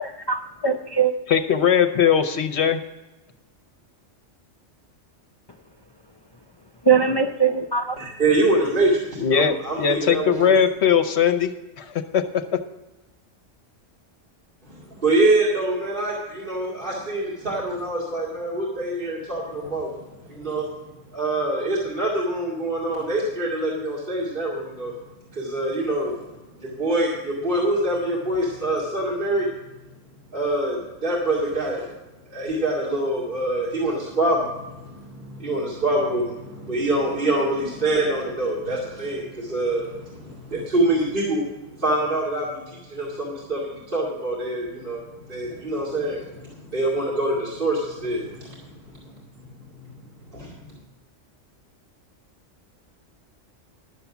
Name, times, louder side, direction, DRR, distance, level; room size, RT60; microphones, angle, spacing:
voice 1, 0.0-1.1 6.9-8.0, right 6 dB, 35° left, 4 dB, 0.4 m, -21 dB
voice 2, 1.3-2.8 9.2-12.6, left 7 dB, 65° left, 10 dB, 1.0 m, -20 dB
voice 3, 8.0-10.6 14.6-20.7 21.1-24.9 25.3-26.2 26.6-29.5 30.3-31.9 32.3-41.5 41.7-49.5 50.3-50.8, right 2 dB, 45° right, -5 dB, 2.4 m, -25 dB
11.5 x 6.9 x 7.1 m, 1.1 s
omnidirectional pair, 1.3 m